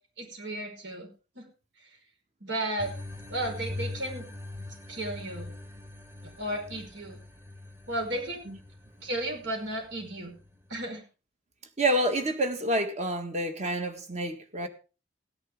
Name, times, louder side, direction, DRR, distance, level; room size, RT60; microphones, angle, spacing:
voice 1, 0.2-1.1 1.3-1.5 2.4-2.9 3.3-4.3 4.9-5.5 6.4-7.2 7.9-8.5 9.0-10.3 10.7-11.0, right 1 dB, 90° right, 5.1 m, -34 dB
sound 1, 2.8-10.9, left 2 dB, 15° right, 1.6 m, -42 dB
voice 2, 11.8-14.7, right 1 dB, 40° right, 1.8 m, -28 dB
16.5 x 10.5 x 3.7 m
head